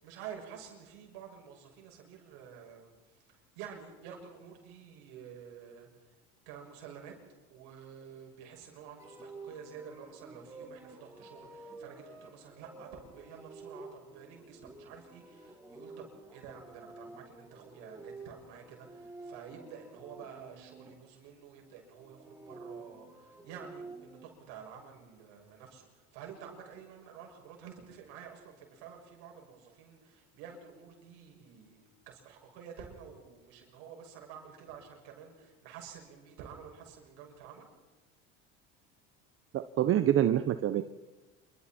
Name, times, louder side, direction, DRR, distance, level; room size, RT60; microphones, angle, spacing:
voice 1, 0.0-6.2 6.4-7.2 7.5-37.7, right 7 dB, 75° right, 1 dB, 6.8 m, -50 dB
sound 1, 9.0-20.9 22.0-24.3, right 3 dB, 10° right, 4.5 m, -50 dB
voice 2, 39.5-40.8, right 11 dB, 45° right, 11 dB, 1.0 m, -26 dB
27.5 x 24.5 x 4.5 m, 1.2 s
supercardioid pair, 90°, 30 cm